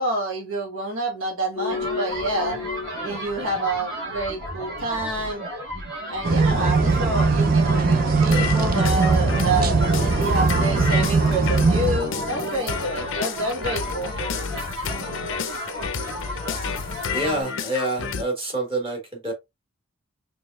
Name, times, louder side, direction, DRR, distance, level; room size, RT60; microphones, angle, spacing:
voice 1, 0.0-2.6 3.0-5.4 6.1-14.1, right 2 dB, 75° right, 1.2 m, -28 dB
sound 1, 1.6-3.3 8.3-18.2, left 5 dB, 65° left, 0.5 m, -31 dB
sound 2, 1.7-17.4, equal, 60° right, 2.5 m, -34 dB
sound 3, 6.2-12.0, right 4 dB, 40° right, 0.5 m, -20 dB
voice 2, 17.1-19.3, right 1 dB, 25° right, 1.3 m, -27 dB
4.7 x 3.2 x 2.3 m
head